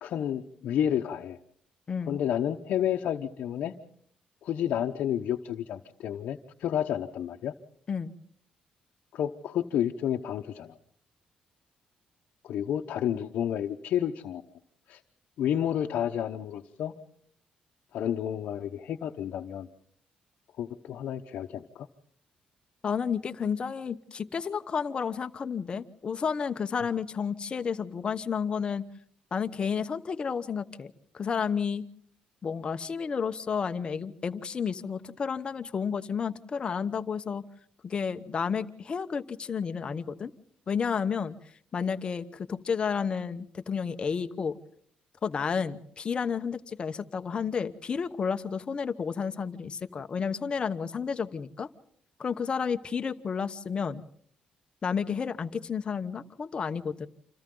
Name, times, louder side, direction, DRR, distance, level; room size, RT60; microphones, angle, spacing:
voice 1, 0.0-1.4 2.1-3.7 4.4-7.5 9.1-10.7 12.4-14.4 14.9-15.0 15.4-16.9 17.9-19.7 20.6-21.9, left 10 dB, 75° left, 1 dB, 1.0 m, -30 dB
voice 2, 1.9-2.2 7.9-8.1 22.8-28.8 29.3-31.8 32.4-37.4 37.8-40.3 40.7-41.3 41.7-44.6 45.2-51.7 52.2-54.0 54.8-57.1, left 6 dB, 35° left, 8 dB, 1.0 m, -31 dB
28.5 x 27.0 x 3.9 m, 0.63 s
cardioid pair, 120°, 3 cm